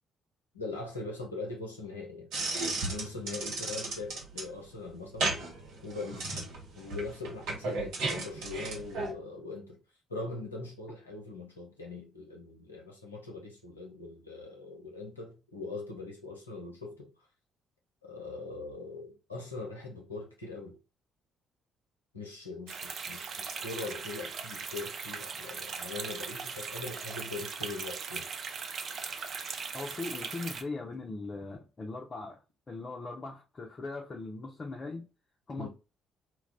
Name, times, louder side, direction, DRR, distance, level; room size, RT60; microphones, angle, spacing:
voice 1, 0.5-2.3 2.9-5.3 5.8-6.4 6.7-9.8 10.1-17.1 18.0-20.7 22.1-28.3 35.6-35.7, left 3 dB, 85° left, 0.7 m, -41 dB
sound 1, 2.3-9.1, right 3 dB, 65° right, 0.9 m, -35 dB
sound 2, 22.7-30.6, right 5 dB, 50° right, 0.4 m, -39 dB
voice 2, 29.7-32.4 32.7-35.1 35.5-35.7, left 3 dB, 35° left, 0.6 m, -39 dB
2.3 x 2.2 x 3.6 m
figure-of-eight pair, 45°, 0 cm